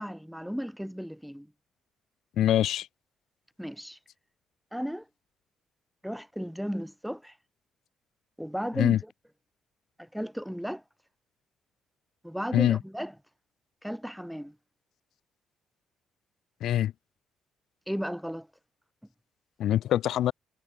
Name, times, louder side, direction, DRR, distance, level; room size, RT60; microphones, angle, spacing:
voice 1, 0.0-1.5 3.6-4.0 4.7-5.0 6.0-7.3 8.4-9.0 10.0-10.8 12.2-13.1 13.8-14.5 17.9-18.5, equal, ahead, 4.5 m, -34 dB
voice 2, 2.4-2.9 8.7-9.0 12.5-12.8 16.6-16.9 19.6-20.3, left 12 dB, 75° left, 1.1 m, -24 dB
cardioid pair, 90°, 0 cm